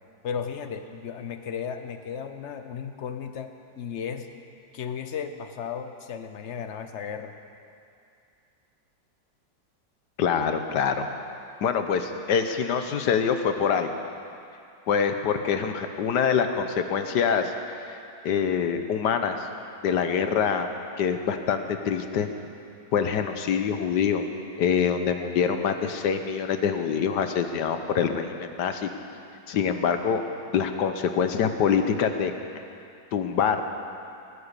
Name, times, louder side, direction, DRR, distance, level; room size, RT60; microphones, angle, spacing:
voice 1, 0.2-4.3 4.7-7.4, left 7 dB, 50° left, 8 dB, 0.9 m, -35 dB
voice 2, 10.2-11.1 11.6-13.9 14.9-18.0 18.2-19.5 19.8-20.7 21.0-22.3 22.9-24.3 24.6-28.9 29.5-30.2 30.5-32.3 33.1-33.6, left 7 dB, 70° left, 7 dB, 1.4 m, -25 dB
19.5 x 9.7 x 6.7 m, 2.5 s
omnidirectional pair, 2.0 m